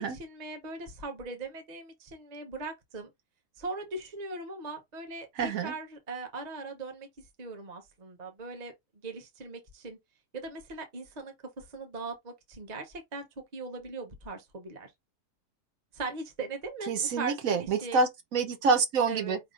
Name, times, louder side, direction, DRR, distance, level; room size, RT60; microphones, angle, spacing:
voice 1, 0.0-3.1 3.6-8.7 9.0-10.0 10.3-13.3 13.5-14.9 15.9-18.0 19.1-19.4, right 3 dB, 35° right, 0.9 m, -40 dB
voice 2, 5.4-5.7 16.9-19.4, right 4 dB, 85° right, 1.3 m, -27 dB
5.0 x 3.5 x 2.5 m
omnidirectional pair, 1.4 m